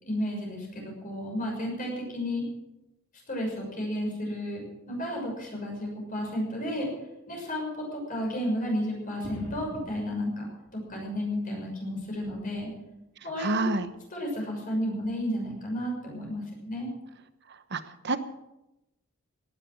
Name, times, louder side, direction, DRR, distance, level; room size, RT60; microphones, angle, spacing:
voice 1, 0.0-2.4 3.3-6.9 7.3-10.5 10.9-12.7 13.2-13.7 14.1-16.9, equal, 40° left, -1 dB, 6.4 m, -32 dB
sound 1, 9.2-11.5 11.8-12.8 13.6-14.0 15.0-15.2, equal, 75° left, 2.7 m, -46 dB
voice 2, 13.4-13.9 17.7-18.2, right 2 dB, 55° right, 11 dB, 1.1 m, -28 dB
17.5 x 11.0 x 6.3 m, 0.94 s
head